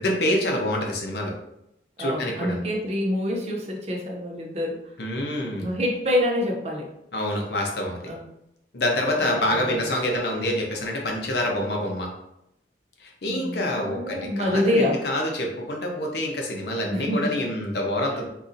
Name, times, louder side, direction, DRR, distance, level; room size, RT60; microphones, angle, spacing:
voice 1, 0.0-1.3 2.0-2.6 5.0-5.8 7.1-8.1 8.7-12.1 13.0-18.2, left 1 dB, 65° left, 0 dB, 0.7 m, -26 dB
voice 2, 2.0-4.8 5.6-6.9 8.1-8.2 9.3-9.9 13.3-14.9 16.9-17.2, left 1 dB, 35° right, 0 dB, 0.6 m, -26 dB
3.9 x 2.7 x 2.5 m, 0.82 s
head